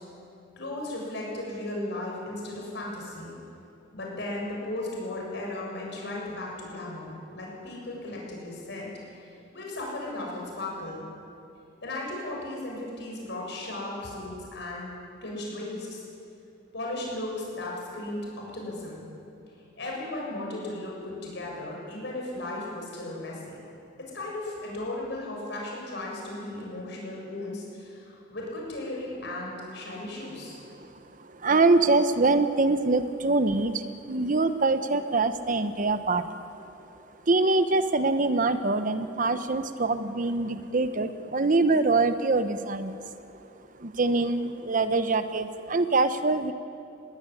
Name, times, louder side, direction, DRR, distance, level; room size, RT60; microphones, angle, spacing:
voice 1, 0.6-3.3 3.9-8.9 9.5-11.0 11.8-14.9 15.2-16.0 16.7-19.0 19.8-23.6 24.0-30.6, left 2 dB, 60° left, -2 dB, 7.4 m, -36 dB
voice 2, 31.2-36.9 37.3-43.1 43.8-46.5, right 3 dB, 45° right, 11 dB, 0.9 m, -24 dB
21.0 x 16.5 x 9.9 m, 2.7 s
head